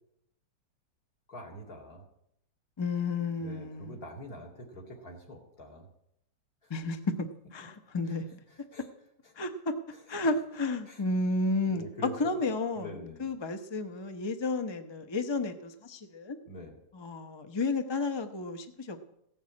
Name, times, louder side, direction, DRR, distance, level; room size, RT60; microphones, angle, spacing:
voice 1, 1.3-2.0 3.4-5.9 6.6-6.7 8.5-8.8 9.2-9.3 9.9-10.0 10.9-11.0 11.7-12.4 12.7-13.3 16.5-16.8, left 1 dB, 50° left, 0 dB, 3.1 m, -45 dB
voice 2, 2.8-4.0 6.7-8.4 9.4-9.7 10.1-16.4 16.9-19.1, left 3 dB, 30° left, 7 dB, 0.4 m, -32 dB
16.0 x 7.3 x 8.4 m, 0.78 s
omnidirectional pair, 2.0 m